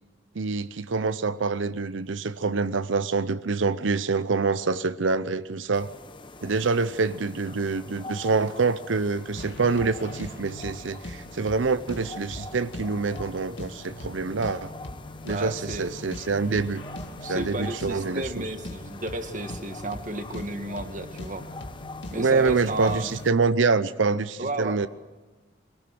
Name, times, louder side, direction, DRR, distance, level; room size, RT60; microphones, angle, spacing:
voice 1, 0.3-5.9 6.4-14.7 15.2-16.8 17.3-18.4 22.2-24.9, right 4 dB, 80° right, 14 dB, 0.7 m, -26 dB
sound 1, 5.7-23.3, left 2 dB, 25° left, 1.0 m, -44 dB
sound 2, 9.4-23.3, left 1 dB, 70° left, 2.4 m, -41 dB
voice 2, 15.2-15.9 16.5-16.6 17.2-21.4 22.1-23.1 24.4-24.8, right 2 dB, 40° right, 7 dB, 1.8 m, -33 dB
23.0 x 18.0 x 7.8 m, 1.2 s
head